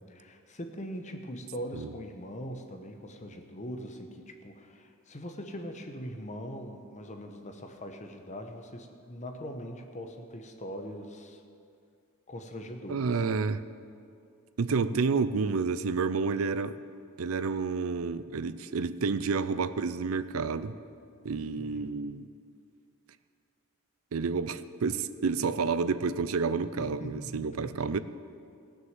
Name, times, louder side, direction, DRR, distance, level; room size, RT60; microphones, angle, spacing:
voice 1, 0.0-11.4 12.3-13.1 21.5-21.9 26.8-28.0, equal, 35° left, 5 dB, 1.1 m, -41 dB
voice 2, 12.9-13.6 14.6-16.8 17.2-20.7 21.2-22.3 24.1-28.0, right 4 dB, 85° right, 14 dB, 0.5 m, -29 dB
17.5 x 6.5 x 7.4 m, 2.4 s
head